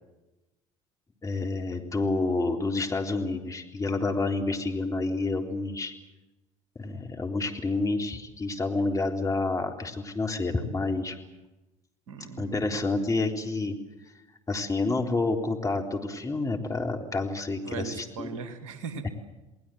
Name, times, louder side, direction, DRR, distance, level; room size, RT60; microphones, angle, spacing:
voice 1, 1.2-5.9 6.8-11.2 12.4-13.8 14.5-18.3 19.0-19.1, left 3 dB, 20° left, 2 dB, 3.7 m, -29 dB
voice 2, 12.1-12.6 17.7-19.1, right 5 dB, 70° right, 8 dB, 2.5 m, -38 dB
29.5 x 20.5 x 7.9 m, 1.0 s
figure-of-eight pair, 65°, 17 cm